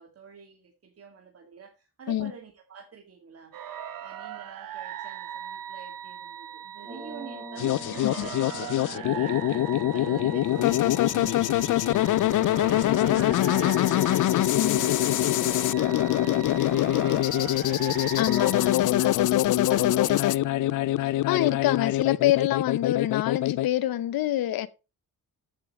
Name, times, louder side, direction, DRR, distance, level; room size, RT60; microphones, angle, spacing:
voice 1, 0.0-3.6 4.0-14.4 14.8-18.3 18.6-19.2 19.7-20.8, right 6 dB, 45° right, 2.3 m, -46 dB
sound 1, 3.5-18.8, right 10 dB, 70° right, 1.5 m, -40 dB
sound 2, 6.8-21.9, right 1 dB, 15° right, 3.9 m, -46 dB
sound 3, 7.6-23.7, left 14 dB, 60° left, 0.5 m, -24 dB
voice 2, 18.2-18.9 21.3-24.7, left 13 dB, 80° left, 0.9 m, -26 dB
14.5 x 8.5 x 3.2 m
cardioid pair, 145°, 35 cm